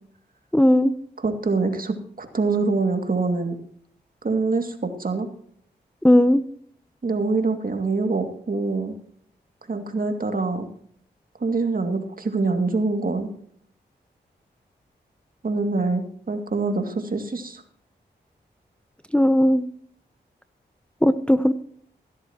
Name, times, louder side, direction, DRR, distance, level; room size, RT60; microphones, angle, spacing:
voice 1, 0.5-0.9 6.0-6.4 19.1-19.7 21.0-21.5, left 1 dB, 5° left, 12 dB, 0.6 m, -17 dB
voice 2, 1.2-3.6 4.2-5.3 7.0-9.0 9.7-10.7 11.4-13.3 15.4-17.6, right 3 dB, 50° right, 5 dB, 2.3 m, -25 dB
16.5 x 12.5 x 2.9 m, 0.63 s
cardioid pair, 45°, 19 cm